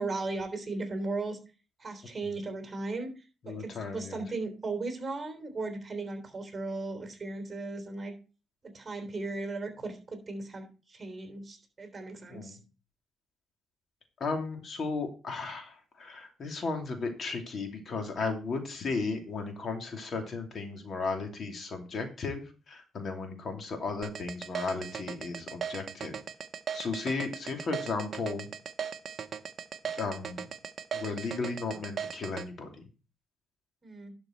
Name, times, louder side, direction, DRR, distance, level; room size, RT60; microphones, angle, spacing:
voice 1, 0.0-1.4 1.8-8.1 8.6-12.6 33.8-34.1, right 3 dB, 30° right, 5 dB, 3.4 m, -37 dB
voice 2, 3.5-4.2 12.3-12.5 14.2-26.2 26.7-28.5 30.0-30.5 30.9-32.8, left 4 dB, 50° left, 4 dB, 2.7 m, -35 dB
sound 1, 24.0-32.4, right 7 dB, 50° right, 0.8 m, -37 dB
11.5 x 5.2 x 4.5 m, 0.34 s
cardioid pair, 90°, 0 cm